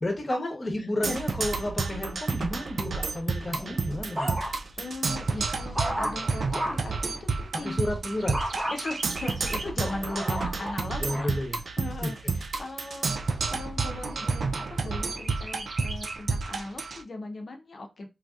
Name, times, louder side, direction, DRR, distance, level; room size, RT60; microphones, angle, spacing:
voice 1, 0.0-4.4 7.6-8.4 11.0-11.6 12.0-12.1, left 1 dB, 30° left, 3 dB, 0.9 m, -31 dB
Percussion, 1.0-17.0, right 4 dB, 65° right, 0.3 m, -30 dB
sound 1, 3.5-4.8 5.3-7.0 8.3-8.8 9.4-11.4 12.0-12.4, equal, 20° right, 0.6 m, -34 dB
Chirp tweet, 4.1-7.8 8.2-9.9 10.3-10.4 10.7-11.7 12.3-12.4 12.8-12.9 13.3-13.8 15.1-16.2, right 2 dB, 85° right, 1.0 m, -42 dB
voice 2, 4.8-7.8 8.7-11.3 11.8-18.1, left 2 dB, 55° left, 3 dB, 0.6 m, -38 dB
3.2 x 2.7 x 2.3 m, 0.26 s
wide cardioid pair, 140°, 0 cm